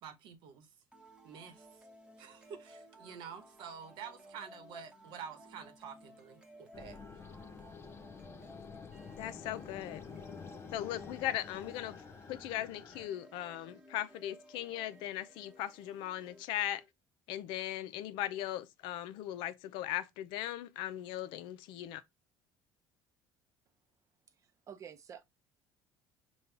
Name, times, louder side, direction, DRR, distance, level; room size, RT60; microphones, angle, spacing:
voice 1, 0.0-0.7 1.2-1.7 2.2-7.0, right 7 dB, 70° right, 1.1 m, -48 dB
sound 1, 0.9-16.9, equal, 10° right, 1.0 m, -57 dB
sound 2, 6.7-13.1, left 5 dB, 30° left, 0.5 m, -49 dB
voice 2, 9.2-10.0 10.7-12.0 12.3-16.8 17.3-22.0, left 13 dB, 75° left, 0.5 m, -38 dB
voice 3, 24.4-25.2, right 8 dB, 40° right, 0.6 m, -50 dB
5.2 x 2.3 x 3.3 m
cardioid pair, 120°, 9 cm